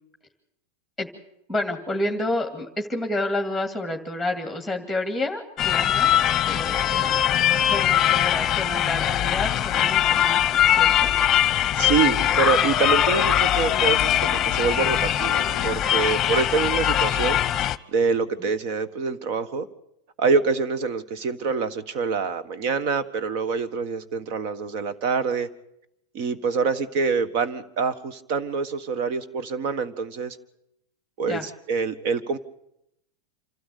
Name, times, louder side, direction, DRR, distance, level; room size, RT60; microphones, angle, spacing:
voice 1, 1.5-7.2 7.6-10.4 10.8-11.1 18.4-18.5 31.3-31.5, left 2 dB, 5° right, 3 dB, 2.3 m, -29 dB
sound 1, 5.6-17.8, left 11 dB, 30° left, 0.8 m, -21 dB
voice 2, 11.7-17.4 17.9-19.7 20.2-25.5 26.1-30.4 31.2-32.4, right 5 dB, 55° right, 13 dB, 1.6 m, -25 dB
sound 2, 13.5-17.1, right 1 dB, 85° right, 7.0 m, -43 dB
27.5 x 13.0 x 8.5 m, 0.81 s
supercardioid pair, 125°, 0 cm